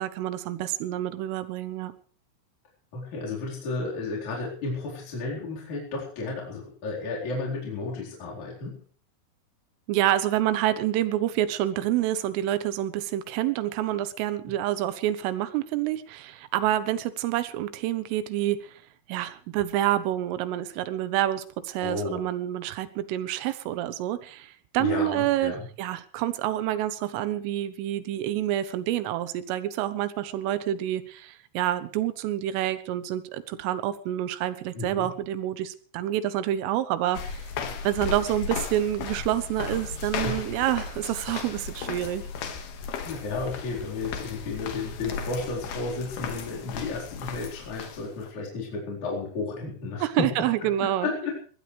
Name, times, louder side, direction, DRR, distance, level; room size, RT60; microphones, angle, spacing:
voice 1, 0.0-1.9 9.9-18.8 19.1-25.5 25.8-37.4 37.9-42.2 50.0-51.1, right 13 dB, 80° right, 13 dB, 3.6 m, -28 dB
voice 2, 2.9-8.8 21.8-22.2 24.8-25.7 34.7-35.1 40.2-40.3 43.0-50.3 50.6-51.3, left 3 dB, 40° left, -4 dB, 5.2 m, -33 dB
sound 1, 37.1-48.3, left 6 dB, 60° left, 3.0 m, -35 dB
21.5 x 16.5 x 3.3 m, 0.43 s
omnidirectional pair, 5.8 m